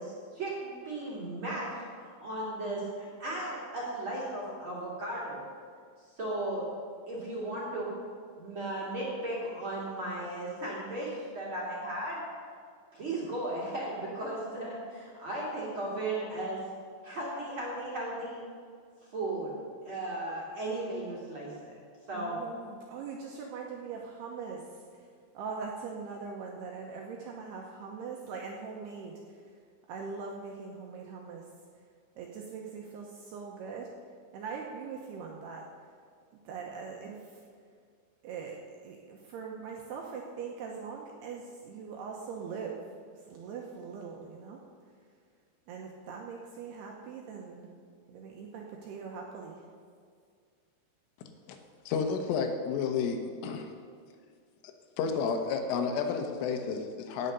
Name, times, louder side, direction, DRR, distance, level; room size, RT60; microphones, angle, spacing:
voice 1, 0.0-5.4 6.2-6.7 7.1-7.9 8.4-12.2 12.9-16.7 17.0-18.4 19.1-21.8 22.1-22.4, right 1 dB, 40° right, -5 dB, 2.1 m, -36 dB
voice 2, 22.1-24.6 25.3-29.4 29.9-31.4 32.2-33.9 34.3-35.6 36.5-37.4 38.2-42.8 43.3-44.6 45.7-47.7 48.1-49.6, right 5 dB, 75° right, 0 dB, 2.5 m, -41 dB
voice 3, 51.9-53.7 55.0-57.3, left 5 dB, 85° left, 5 dB, 3.6 m, -31 dB
17.5 x 6.7 x 6.8 m, 2.1 s
omnidirectional pair, 5.6 m